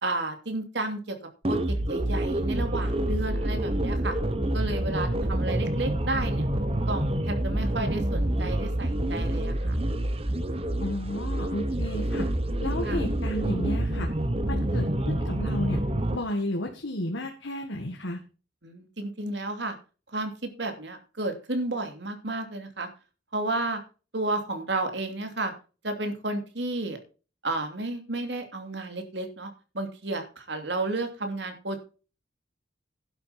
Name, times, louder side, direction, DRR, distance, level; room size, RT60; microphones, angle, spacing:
voice 1, 0.0-1.2 1.5-1.6 1.9-4.1 4.5-6.4 6.9-9.8 12.9-13.0 18.6-19.8 20.1-22.9 23.3-23.8 24.1-25.5 25.8-27.0 27.4-29.5 29.7-31.8, right 2 dB, 70° right, 6 dB, 2.8 m, -32 dB
sound 1, 1.4-16.2, right 1 dB, 30° right, 1.2 m, -27 dB
voice 2, 10.8-12.3 12.6-14.1 14.5-15.8 16.1-18.2, left 1 dB, 90° left, 3 dB, 1.9 m, -32 dB
11.0 x 8.0 x 5.9 m, 0.35 s
head